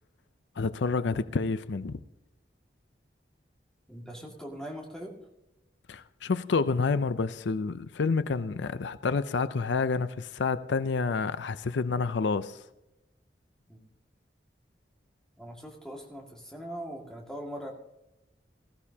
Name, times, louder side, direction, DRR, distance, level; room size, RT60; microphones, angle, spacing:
voice 1, 0.6-2.0 5.9-12.6, left 4 dB, 80° left, 0.5 m, -29 dB
voice 2, 3.9-5.1 13.7-13.8 15.4-17.7, equal, 5° left, 2.1 m, -41 dB
19.5 x 14.5 x 2.8 m
head